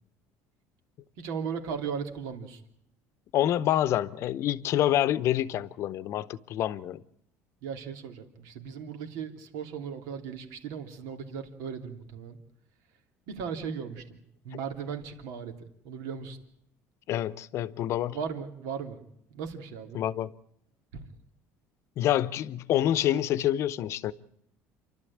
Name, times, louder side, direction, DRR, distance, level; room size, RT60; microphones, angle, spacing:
voice 1, 1.2-2.6 7.6-12.4 13.3-14.2 14.4-15.5 15.8-16.4 18.1-19.0 19.3-20.0 20.9-21.0, right 6 dB, 75° right, 3.1 m, -37 dB
voice 2, 3.3-7.0 17.1-18.2 19.9-20.4 22.0-24.1, left 12 dB, 50° left, 0.8 m, -27 dB
28.5 x 12.0 x 8.7 m
cardioid pair, 145°, 6 cm